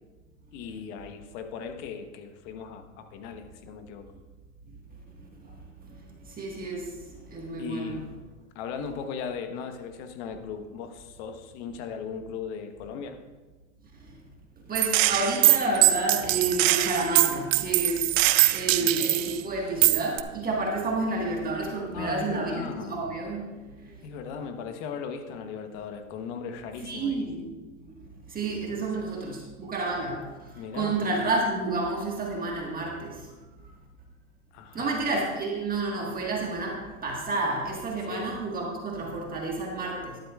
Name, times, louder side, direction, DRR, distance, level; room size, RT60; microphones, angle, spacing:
voice 1, 0.5-4.1 7.6-8.0 8.5-13.2 18.8-18.9 21.9-23.1 24.0-27.2 28.8-28.9 30.5-30.9 34.5-35.0 38.1-38.3, left 6 dB, 55° left, 7 dB, 1.2 m, -38 dB
voice 2, 5.2-8.0 14.0-14.2 14.7-24.0 26.8-27.5 27.8-33.3 33.6-33.7 34.7-40.2, right 2 dB, 20° right, -1 dB, 1.6 m, -30 dB
Gunshot gunfire, 14.7-19.4 19.8-20.2, right 16 dB, 60° right, 0.6 m, -22 dB
12.5 x 11.5 x 2.4 m, 1.2 s
hypercardioid pair, 125°, 42 cm